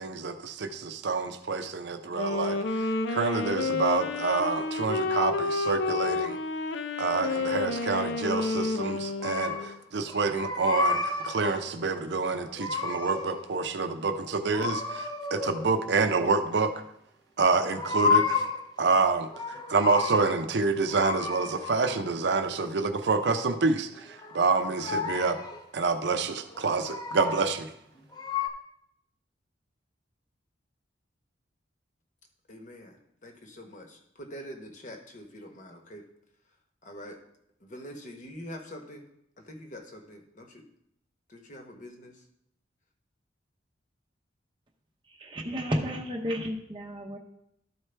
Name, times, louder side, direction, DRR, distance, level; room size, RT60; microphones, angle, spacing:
voice 1, 0.0-6.4 7.0-16.8 17.4-18.5 18.8-25.5 25.7-27.7, right 4 dB, 65° right, 8 dB, 0.6 m, -28 dB
Wind instrument woodwind instrument, 2.1-9.8, left 3 dB, 75° left, 0.5 m, -30 dB
sound 1, 9.2-9.8 10.1-11.7 12.3-13.5 14.5-15.9 17.4-18.7 19.1-20.4 20.9-22.2 24.0-25.6 26.4-27.6 28.1-28.5, left 4 dB, 20° left, 0.5 m, -31 dB
voice 2, 32.5-36.0 36.8-37.2 37.6-39.1 39.4-40.7 41.3-42.2, equal, 40° left, 3 dB, 1.0 m, -45 dB
voice 3, 45.1-47.2, equal, 25° right, 0 dB, 0.7 m, -32 dB
12.5 x 4.6 x 3.3 m, 0.77 s
head